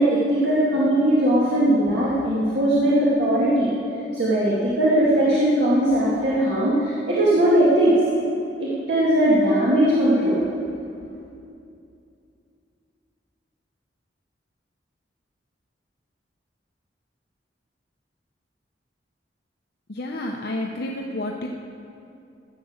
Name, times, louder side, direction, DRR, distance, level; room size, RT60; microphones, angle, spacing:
voice 1, 0.0-3.7 4.1-8.0 8.6-10.4, right 1 dB, 70° right, -7 dB, 2.1 m, -19 dB
voice 2, 19.9-21.5, left 1 dB, 60° left, 1 dB, 0.7 m, -30 dB
14.5 x 8.2 x 6.4 m, 2.6 s
head